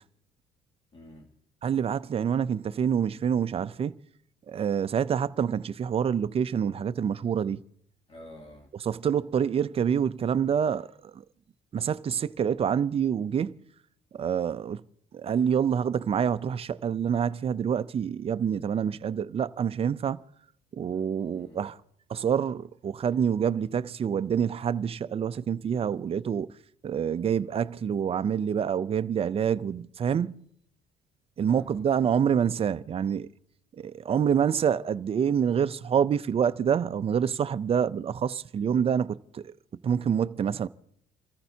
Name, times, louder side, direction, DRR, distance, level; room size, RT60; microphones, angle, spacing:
voice 1, 0.9-1.3 8.1-8.7 21.3-21.6 31.5-32.1, left 1 dB, 35° left, 2.5 m, -48 dB
voice 2, 1.6-3.9 4.5-7.6 8.8-10.9 11.1-11.2 11.7-13.6 14.1-14.8 15.1-20.2 20.7-21.8 22.1-26.5 26.8-30.4 31.4-33.3 33.8-39.5 39.8-40.7, right 8 dB, 35° right, 0.5 m, -27 dB
28.0 x 14.5 x 2.8 m
cardioid pair, 110°, 17 cm